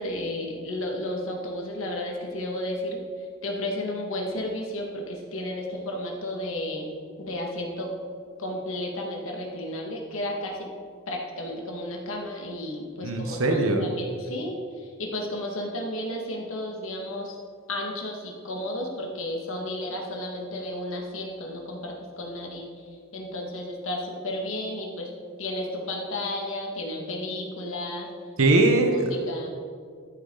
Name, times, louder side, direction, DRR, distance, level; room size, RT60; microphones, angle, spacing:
voice 1, 0.0-3.0 3.4-6.9 7.2-7.9 8.4-10.7 11.1-14.6 15.0-17.4 17.7-22.7 23.1-25.1 25.4-28.1 28.9-29.5, left 1 dB, 60° left, 0 dB, 1.9 m, -33 dB
voice 2, 13.0-13.8 28.4-29.1, right 2 dB, 70° right, 4 dB, 1.1 m, -21 dB
13.5 x 8.6 x 4.0 m, 2.2 s
head